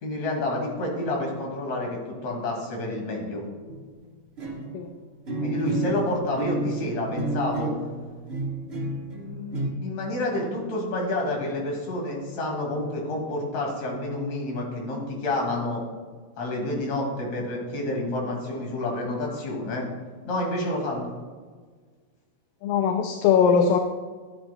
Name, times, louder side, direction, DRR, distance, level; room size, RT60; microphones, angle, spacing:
voice 1, 0.0-3.5 5.4-7.7 9.1-15.8 16.4-19.9 20.2-21.1, left 1 dB, 55° left, 0 dB, 3.3 m, -29 dB
sound 1, 3.7-4.0 4.4-9.7, right 2 dB, 70° right, 0.6 m, -31 dB
voice 2, 22.6-23.8, left 6 dB, 80° left, 5 dB, 2.3 m, -20 dB
14.0 x 10.5 x 2.3 m, 1.5 s
omnidirectional pair, 4.0 m